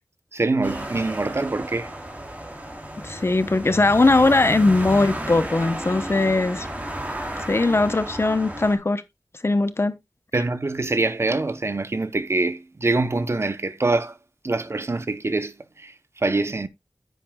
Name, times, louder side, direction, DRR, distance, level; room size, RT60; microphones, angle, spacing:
voice 1, 0.3-1.9 10.3-14.1 14.4-16.7, right 2 dB, 50° right, 0.9 m, -24 dB
sound 1, 0.6-8.8, right 1 dB, 25° right, 3.0 m, -33 dB
voice 2, 3.0-6.7 7.5-9.0 9.4-9.9, left 2 dB, 45° left, 0.9 m, -20 dB
9.8 x 9.2 x 2.3 m
wide cardioid pair, 75°, 6 cm